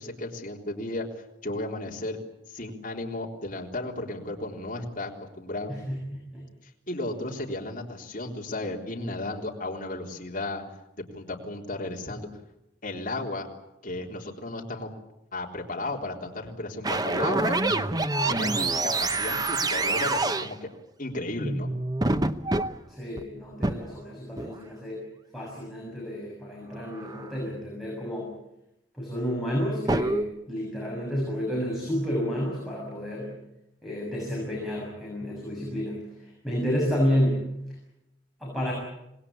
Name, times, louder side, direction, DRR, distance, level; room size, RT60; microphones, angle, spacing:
voice 1, 0.0-2.2 2.5-5.1 5.4-5.8 6.6-10.6 11.1-12.3 12.8-13.5 13.8-14.9 15.3-17.8 18.3-20.7 21.0-21.7, left 2 dB, 45° left, 0 dB, 3.8 m, -34 dB
voice 2, 5.7-6.4 22.9-25.0 25.3-28.3 29.0-33.3 33.8-37.4 38.4-38.7, equal, ahead, -3 dB, 7.0 m, -30 dB
sound 1, 16.8-20.5 21.4-22.7 23.2-23.3 23.6-23.8 24.4-24.6 26.9-27.3 29.9-30.2, right 2 dB, 20° right, 0.8 m, -26 dB
26.5 x 19.5 x 8.7 m, 0.86 s
head